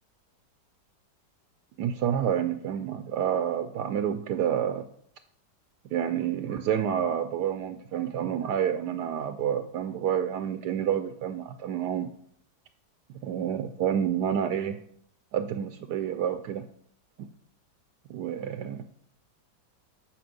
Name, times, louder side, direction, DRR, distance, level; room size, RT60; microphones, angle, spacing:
voice 1, 1.8-4.9 5.9-12.1 13.2-14.8 15.3-16.7 17.2-17.3 18.1-18.8, right 9 dB, 75° right, 9 dB, 1.1 m, -29 dB
8.7 x 6.7 x 5.3 m, 0.66 s
omnidirectional pair, 1.9 m